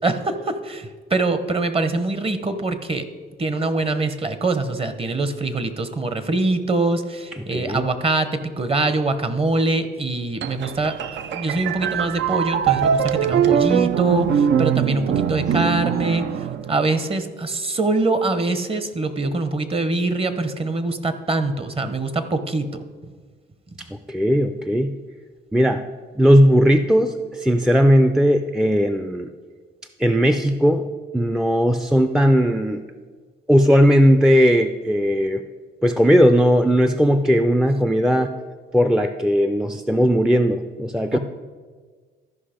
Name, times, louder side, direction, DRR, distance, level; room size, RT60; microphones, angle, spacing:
voice 1, 0.0-3.0 3.4-10.9 11.3-16.2 16.7-22.7 41.1-41.2, right 2 dB, 30° right, 10 dB, 0.9 m, -23 dB
voice 2, 7.3-7.9 23.9-24.9 25.5-25.8 26.2-29.3 30.0-30.9 31.1-32.8 33.5-35.4 35.8-38.3 38.7-41.2, equal, 5° right, 7 dB, 0.4 m, -17 dB
sound 1, 10.4-17.1, right 9 dB, 65° right, 0.5 m, -22 dB
13.5 x 5.4 x 5.1 m, 1.5 s
cardioid pair, 90°, 20 cm